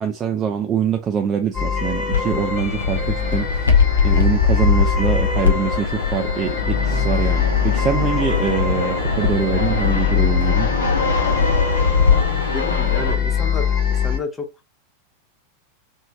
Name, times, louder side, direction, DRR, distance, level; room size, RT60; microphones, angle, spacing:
voice 1, 0.0-10.7, right 7 dB, 25° right, 0.4 m, -24 dB
sound 1, 1.5-14.2, left 7 dB, 35° left, 1.2 m, -24 dB
Fixed-wing aircraft airplane, 2.1-13.1, left 5 dB, 70° left, 0.7 m, -21 dB
sound 2, 6.6-13.8, right 1 dB, 85° right, 0.7 m, -36 dB
voice 2, 11.7-13.7 14.0-14.5, left 3 dB, 15° left, 0.7 m, -32 dB
3.1 x 2.7 x 2.3 m
figure-of-eight pair, 90°, 0 cm